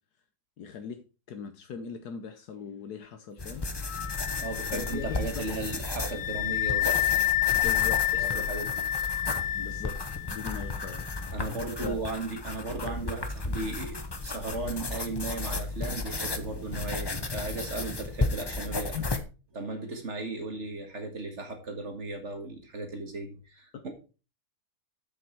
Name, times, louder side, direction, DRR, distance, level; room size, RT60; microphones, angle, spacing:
voice 1, 0.6-3.6 4.7-5.4 7.6-8.5 9.5-10.0 10.3-11.1 11.8-11.9 18.9-19.2 23.7-23.8, left 6 dB, 75° left, 7 dB, 1.4 m, -39 dB
sound 1, 3.4-19.2, left 3 dB, 25° left, 0.5 m, -34 dB
Wind instrument woodwind instrument, 3.9-11.3, left 14 dB, 60° left, 1.0 m, -30 dB
voice 2, 4.4-6.9 8.3-8.9 11.3-19.0 19.5-23.9, right 3 dB, 45° right, 4 dB, 2.0 m, -36 dB
7.9 x 7.0 x 4.6 m, 0.33 s
omnidirectional pair, 1.7 m